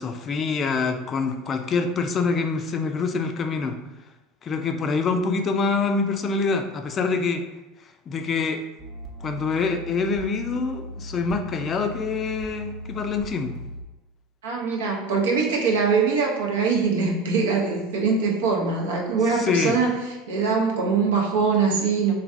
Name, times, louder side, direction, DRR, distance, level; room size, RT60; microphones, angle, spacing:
voice 1, 0.0-3.8 4.4-7.4 8.1-8.6 9.2-13.6 19.3-19.8, left 4 dB, 35° left, 6 dB, 0.4 m, -25 dB
sound 1, 8.8-13.8, equal, 40° right, 0.7 m, -38 dB
voice 2, 14.4-22.1, right 5 dB, 85° right, -1 dB, 0.6 m, -23 dB
3.2 x 2.2 x 2.5 m, 1.0 s
hypercardioid pair, 90°, 0 cm